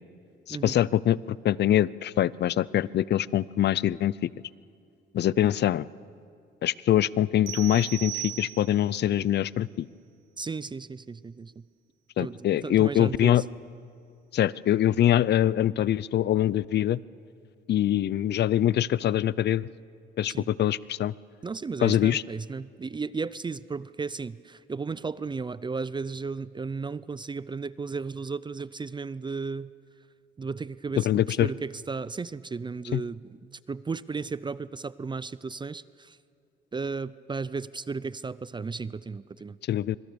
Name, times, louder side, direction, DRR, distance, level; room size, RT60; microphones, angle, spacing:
voice 1, 0.5-1.2 1.4-4.1 5.1-5.9 6.6-9.9 12.2-13.4 14.3-17.0 17.7-19.7 20.2-21.1 21.8-22.2 31.0-31.5 32.9-33.0 39.7-40.0, left 12 dB, 60° left, 21 dB, 0.5 m, -24 dB
sound 1, 7.5-9.0, right 15 dB, 75° right, 0.8 m, -37 dB
voice 2, 10.4-11.6 12.2-13.4 20.3-20.5 21.4-29.7 30.4-33.2 33.7-36.2 36.7-39.6, right 4 dB, 25° right, 18 dB, 0.5 m, -34 dB
25.5 x 23.0 x 7.0 m, 2.4 s
cardioid pair, 90°, 20 cm